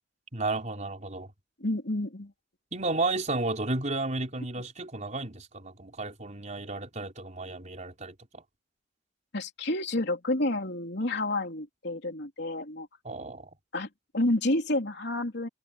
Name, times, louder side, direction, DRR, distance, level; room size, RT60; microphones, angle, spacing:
voice 1, 0.3-1.3 2.7-8.4 13.0-13.5, right 2 dB, 40° right, 4.1 m, -33 dB
voice 2, 1.6-2.3 9.3-12.9 13.7-13.9 14.1-15.5, left 1 dB, 65° left, 3.6 m, -29 dB
head